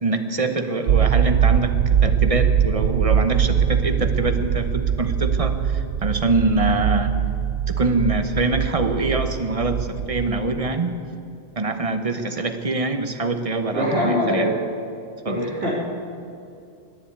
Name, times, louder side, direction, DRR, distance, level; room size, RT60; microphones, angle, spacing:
voice 1, 0.0-7.2 7.7-10.9 11.6-14.5 15.2-15.5, right 3 dB, 35° right, 8 dB, 1.0 m, -24 dB
sound 1, 0.9-10.7, right 8 dB, 80° right, 0.9 m, -22 dB
voice 2, 13.7-14.6 15.2-15.7, equal, 65° right, -6 dB, 3.5 m, -22 dB
19.5 x 7.1 x 9.4 m, 2.4 s
omnidirectional pair, 1.1 m